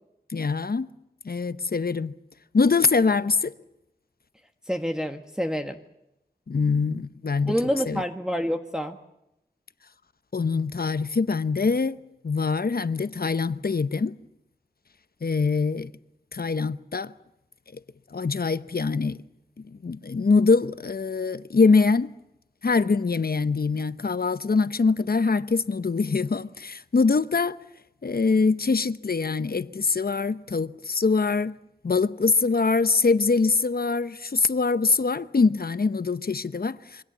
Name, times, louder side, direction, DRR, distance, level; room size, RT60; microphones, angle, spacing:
voice 1, 0.3-0.9 1.2-2.1 2.5-3.5 6.5-7.6 7.9-8.0 10.3-12.0 12.2-14.2 15.2-15.9 16.3-17.1 18.1-19.2 19.7-22.1 22.6-27.6 28.0-31.6 31.8-37.0, left 4 dB, 60° left, 0.9 m, -23 dB
voice 2, 4.7-5.8 7.5-9.0, equal, 5° right, 1.4 m, -27 dB
26.5 x 23.5 x 7.4 m
wide cardioid pair, 60°, 17 cm